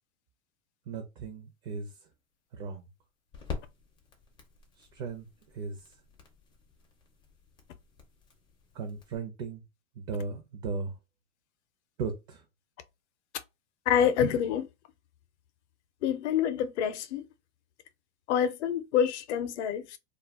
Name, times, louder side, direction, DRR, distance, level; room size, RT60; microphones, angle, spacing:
voice 1, 0.9-1.9 2.5-2.9 4.8-5.3 5.5-5.8 8.7-9.6 10.0-10.9 12.0-12.4, right 4 dB, 40° right, 0.6 m, -36 dB
sound 1, 1.2-9.2, left 5 dB, 15° left, 0.4 m, -47 dB
voice 2, 13.9-14.7 16.0-17.3 18.3-20.0, left 8 dB, 60° left, 0.5 m, -27 dB
2.3 x 2.2 x 3.4 m
hypercardioid pair, 135°, 39 cm